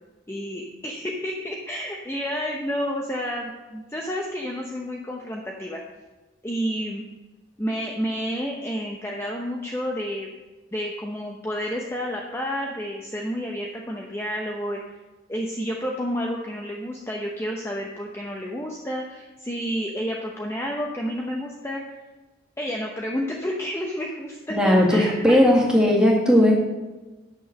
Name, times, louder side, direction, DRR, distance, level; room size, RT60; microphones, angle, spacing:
voice 1, 0.3-5.8 6.4-7.0 7.6-10.3 10.7-14.8 15.3-21.8 22.6-25.4, equal, 15° left, -1 dB, 0.8 m, -30 dB
voice 2, 24.5-26.5, left 1 dB, 5° right, -3 dB, 1.9 m, -17 dB
9.8 x 6.3 x 6.4 m, 1.2 s
head